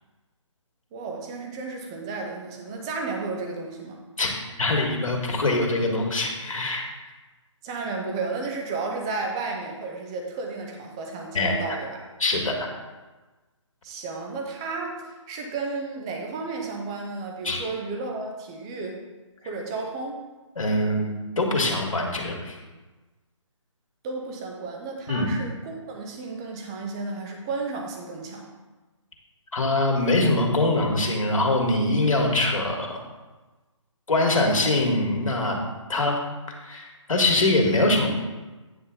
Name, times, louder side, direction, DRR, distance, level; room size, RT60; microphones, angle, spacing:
voice 1, 0.9-4.0 7.6-12.1 13.8-19.0 19.4-20.2 24.0-28.5, right 3 dB, 10° right, 1 dB, 0.5 m, -33 dB
voice 2, 4.6-6.9 11.3-11.6 12.2-12.7 17.4-17.6 20.6-21.1 21.4-22.6 25.1-25.3 29.5-33.0 34.1-35.6 35.9-36.2 36.6-38.1, left 2 dB, 90° left, 0 dB, 2.1 m, -23 dB
9.4 x 3.7 x 6.6 m, 1.2 s
hypercardioid pair, 165°, 16 cm